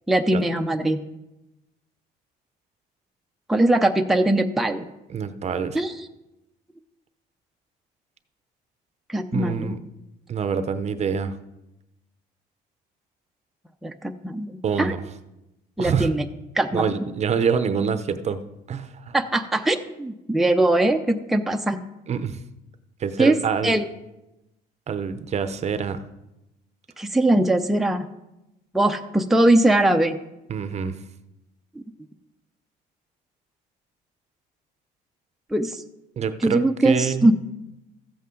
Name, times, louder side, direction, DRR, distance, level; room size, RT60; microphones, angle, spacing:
voice 1, 0.1-1.0 3.5-4.8 5.7-5.9 9.1-9.7 13.8-14.9 15.8-16.2 16.5-17.0 19.1-21.8 23.2-23.4 23.6-23.8 27.0-28.1 28.7-30.2 35.5-35.8 36.4-37.3, right 1 dB, ahead, 4 dB, 0.6 m, -21 dB
voice 2, 5.1-5.8 9.3-9.8 10.3-11.4 14.6-15.0 15.8-16.1 16.7-18.4 18.7-19.1 22.1-22.4 23.0-23.8 24.9-26.0 30.5-31.0 36.2-37.3, right 6 dB, 40° right, 11 dB, 0.7 m, -26 dB
14.0 x 8.3 x 3.8 m, 0.94 s
cardioid pair, 110°, 17 cm